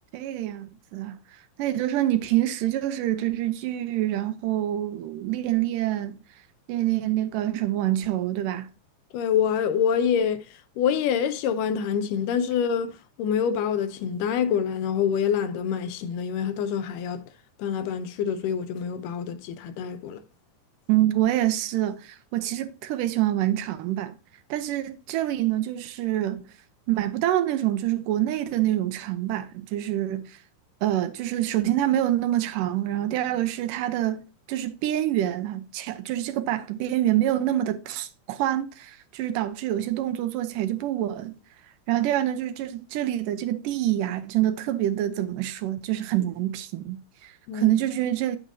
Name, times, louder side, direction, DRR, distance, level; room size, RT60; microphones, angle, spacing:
voice 1, 0.1-1.2 1.6-6.1 6.7-8.7 20.9-24.2 24.5-26.5 26.9-30.4 30.8-34.2 34.5-41.4 41.9-48.4, right 13 dB, 80° right, 2.4 m, -26 dB
voice 2, 9.1-10.4 10.8-17.2 17.6-20.2 47.5-47.7, left 8 dB, 85° left, 2.3 m, -26 dB
8.3 x 8.3 x 2.7 m
omnidirectional pair, 3.8 m